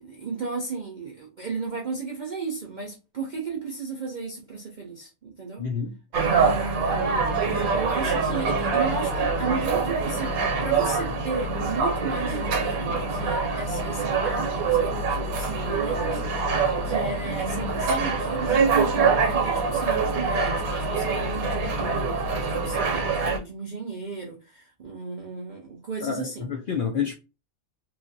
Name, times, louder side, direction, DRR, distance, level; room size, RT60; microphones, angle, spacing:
voice 1, 0.0-5.6 6.1-26.5, right 4 dB, 70° right, 0.4 m, -34 dB
voice 2, 5.6-5.9 26.0-27.1, left 7 dB, 85° left, 0.4 m, -28 dB
sound 1, 6.1-23.4, right 4 dB, 90° right, 1.1 m, -25 dB
3.1 x 2.4 x 2.6 m
omnidirectional pair, 1.4 m